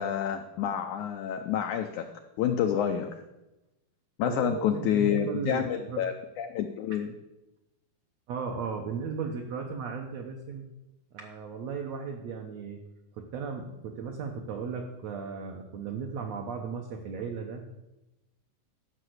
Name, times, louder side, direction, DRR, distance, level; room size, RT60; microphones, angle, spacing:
voice 1, 0.0-2.1 2.4-3.1 4.2-7.1, left 9 dB, 85° left, 6 dB, 1.7 m, -28 dB
voice 2, 4.2-6.0 8.3-10.6 11.1-12.8 13.2-17.6, right 5 dB, 70° right, 2 dB, 1.6 m, -36 dB
12.5 x 5.8 x 7.9 m, 0.98 s
omnidirectional pair, 4.3 m